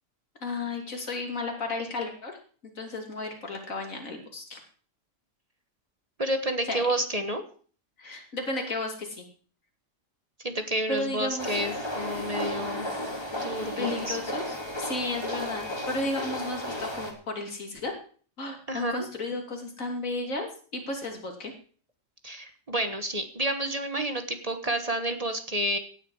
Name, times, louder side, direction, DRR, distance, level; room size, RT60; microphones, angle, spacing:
voice 1, 0.4-2.3 2.8-4.6 6.6-6.9 8.0-9.2 10.9-11.6 13.8-18.0 18.4-21.5, left 2 dB, 85° left, 2 dB, 3.2 m, -33 dB
voice 2, 6.2-7.4 10.4-12.9 13.4-14.2 18.7-19.1 22.2-25.8, right 1 dB, 30° right, 7 dB, 1.3 m, -30 dB
sound 1, 11.4-17.1, left 1 dB, 20° left, 2.6 m, -33 dB
16.5 x 10.0 x 4.8 m, 0.43 s
omnidirectional pair, 1.4 m